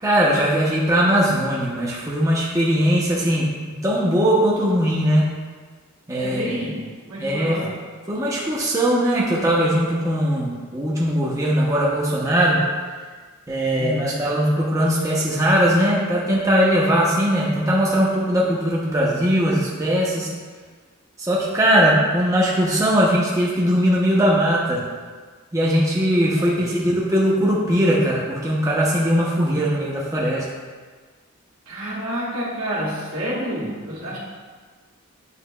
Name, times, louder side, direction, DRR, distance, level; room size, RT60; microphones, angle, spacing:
voice 1, 0.0-5.3 6.1-6.6 7.2-7.6 8.1-12.6 13.5-20.3 21.2-24.8 25.5-30.5, equal, 15° right, -5 dB, 0.5 m, -20 dB
voice 2, 6.2-7.8 13.8-14.2 26.4-26.9 31.7-34.2, equal, 80° right, -7 dB, 1.4 m, -29 dB
8.0 x 2.8 x 2.2 m, 1.5 s
head